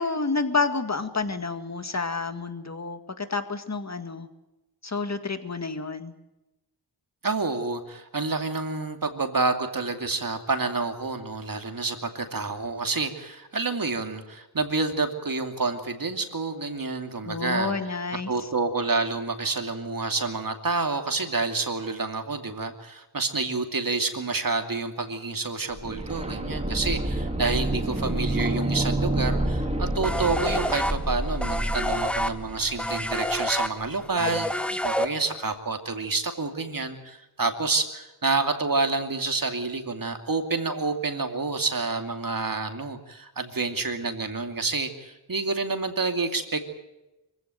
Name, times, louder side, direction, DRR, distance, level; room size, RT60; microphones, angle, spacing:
voice 1, 0.0-4.3 4.8-6.1 17.2-18.3, left 4 dB, 40° left, 8 dB, 2.0 m, -29 dB
voice 2, 7.2-17.7 18.3-46.6, right 3 dB, 50° right, 5 dB, 2.6 m, -28 dB
sound 1, 25.8-33.5 33.8-33.9, right 1 dB, 15° right, 2.3 m, -29 dB
sound 2, 30.0-35.5, equal, 5° left, 1.2 m, -28 dB
24.0 x 16.0 x 9.1 m, 1.0 s
wide cardioid pair, 70°, 42 cm